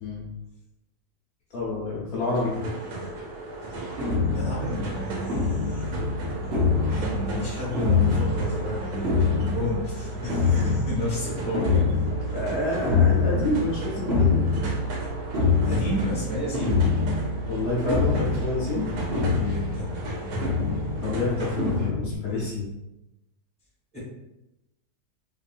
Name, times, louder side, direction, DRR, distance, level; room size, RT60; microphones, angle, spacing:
voice 1, 1.5-2.5 12.3-14.4 17.5-18.9 21.0-22.7, left 2 dB, 65° left, -6 dB, 1.1 m, -28 dB
sound 1, 2.3-21.9, right 1 dB, 75° right, 1.2 m, -36 dB
sound 2, 4.0-22.1, left 4 dB, 50° right, 0.8 m, -26 dB
voice 2, 4.3-5.8 6.4-11.9 15.6-16.8 19.5-20.6 23.9-24.0, left 1 dB, 5° left, -8 dB, 1.0 m, -32 dB
3.0 x 2.6 x 2.5 m, 0.94 s
omnidirectional pair, 1.8 m